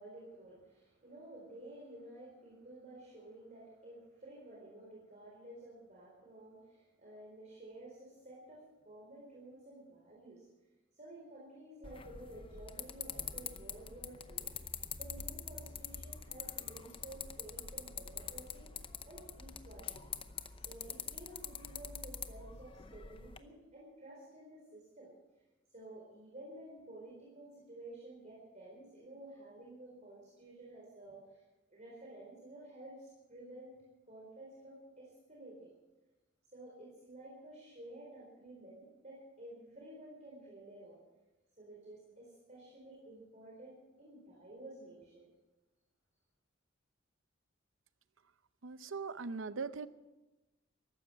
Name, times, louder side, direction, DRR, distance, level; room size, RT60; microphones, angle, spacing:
voice 1, 0.0-10.5 10.9-14.5 14.9-20.1 20.6-25.1 25.7-31.4 31.7-33.8 34.1-35.7 36.5-41.0 41.6-45.3, right 1 dB, 35° right, -4 dB, 4.1 m, -52 dB
sound 1, 11.8-23.4, left 7 dB, 25° left, 0.7 m, -45 dB
voice 2, 48.6-49.9, right 4 dB, 75° right, 13 dB, 0.7 m, -40 dB
14.5 x 12.0 x 7.4 m, 1.1 s
head